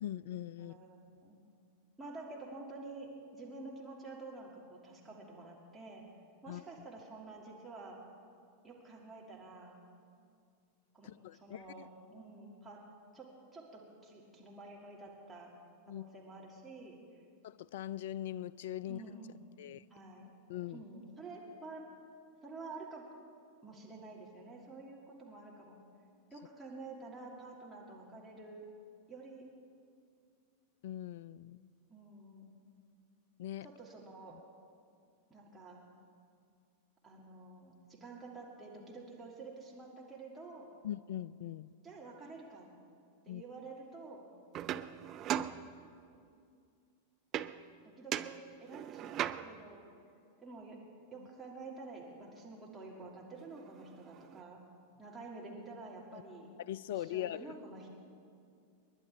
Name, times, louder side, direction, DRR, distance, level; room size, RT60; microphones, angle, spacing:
voice 1, 0.0-0.7 6.5-6.6 11.0-11.9 15.9-16.0 17.4-19.0 19.6-19.8 20.5-20.8 30.8-31.7 33.4-33.7 34.3-34.4 40.8-41.7 43.3-43.4 44.6-44.9 56.1-56.2 56.7-57.4, left 12 dB, 55° left, 20 dB, 0.3 m, -41 dB
voice 2, 0.6-1.4 2.0-6.0 6.4-8.0 8.6-9.8 10.9-12.8 13.1-13.3 13.5-15.5 15.9-17.2 18.8-19.4 19.9-20.3 20.7-21.8 22.4-23.0 23.6-25.8 26.3-28.6 29.1-29.4 31.9-32.5 33.6-34.4 35.3-35.8 37.0-40.7 41.8-42.7 43.2-44.3 45.4-45.6 47.8-49.8 50.4-50.8 51.1-54.6 55.0-56.5 56.9-57.9, right 3 dB, 10° right, -4 dB, 2.8 m, -49 dB
sound 1, 44.5-46.2 47.3-47.8 48.1-49.7 53.0-53.1 53.4-54.4, right 11 dB, 35° right, 0.5 m, -39 dB
29.5 x 11.0 x 3.7 m, 2.4 s
figure-of-eight pair, 90°, 0 cm